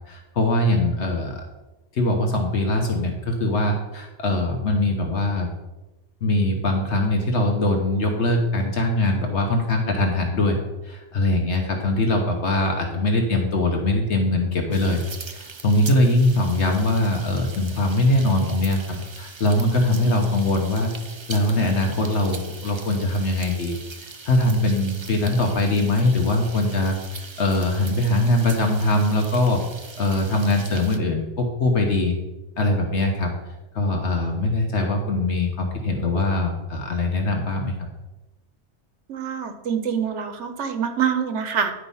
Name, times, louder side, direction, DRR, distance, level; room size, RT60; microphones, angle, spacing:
voice 1, 0.1-1.4 1.9-5.5 6.2-10.6 10.8-15.0 15.3-20.9 21.3-23.8 24.0-27.0 27.4-29.6 30.0-32.2 32.6-33.3 33.7-37.9, left 1 dB, 70° left, 2 dB, 1.4 m, -22 dB
sound 1, 14.7-31.0, right 4 dB, 35° right, 0.5 m, -41 dB
voice 2, 39.1-41.7, right 7 dB, 75° right, 7 dB, 1.2 m, -25 dB
10.0 x 4.8 x 5.6 m, 1.1 s
omnidirectional pair, 1.2 m